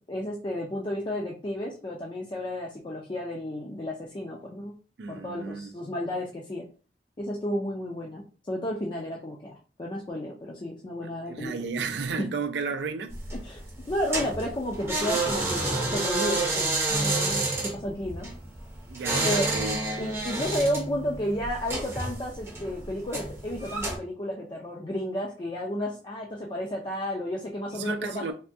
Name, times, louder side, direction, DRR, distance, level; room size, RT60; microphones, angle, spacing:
voice 1, 0.1-4.7 5.1-6.6 7.2-9.5 9.8-11.5 12.2-12.3 13.4-18.3 19.2-19.5 20.0-28.3, left 1 dB, 25° left, 0.4 m, -32 dB
voice 2, 5.0-5.7 11.3-13.2 18.9-20.0 27.7-28.3, right 5 dB, 70° right, 0.4 m, -33 dB
sound 1, 13.1-24.0, right 2 dB, 15° right, 0.6 m, -29 dB
3.4 x 2.2 x 2.6 m
head